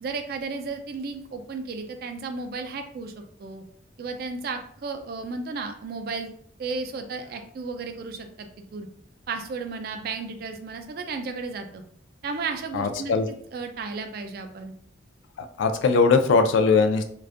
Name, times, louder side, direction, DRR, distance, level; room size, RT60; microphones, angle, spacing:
voice 1, 0.0-3.1 3.4-3.6 4.0-6.3 6.6-8.9 9.3-11.8 12.2-14.7, right 4 dB, 50° right, 6 dB, 0.3 m, -34 dB
voice 2, 12.7-13.3 15.6-17.0, left 4 dB, 75° left, 7 dB, 0.3 m, -20 dB
2.5 x 2.2 x 2.4 m, 0.62 s
head